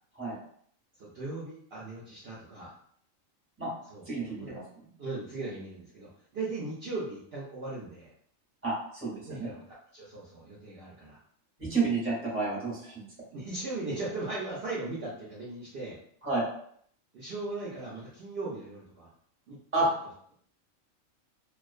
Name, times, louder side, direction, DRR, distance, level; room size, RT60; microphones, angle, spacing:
voice 1, 1.0-2.7 3.9-4.6 5.0-8.1 9.3-11.2 11.7-11.9 13.3-16.0 17.1-19.1 19.5-19.9, right 2 dB, 60° right, -6 dB, 0.7 m, -38 dB
voice 2, 4.1-4.6 8.6-9.5 11.6-12.9 16.2-16.4 19.7-19.9, right 3 dB, 10° right, -6 dB, 0.7 m, -30 dB
2.4 x 2.2 x 2.4 m, 0.62 s
omnidirectional pair, 1.4 m